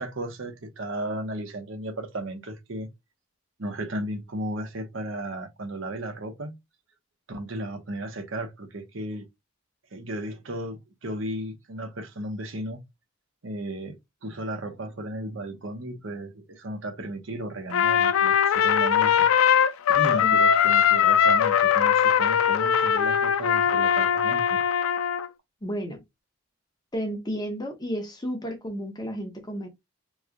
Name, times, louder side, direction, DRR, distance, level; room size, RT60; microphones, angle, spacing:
voice 1, 0.0-2.9 3.6-6.5 7.3-9.3 9.9-12.8 13.4-14.0 14.2-19.3 19.9-24.6, right 1 dB, 65° right, 0.9 m, -35 dB
Trumpet, 17.7-25.3, left 8 dB, 80° left, 0.4 m, -21 dB
voice 2, 25.6-26.0 26.9-29.7, equal, 20° left, 0.9 m, -32 dB
3.1 x 2.3 x 3.7 m
head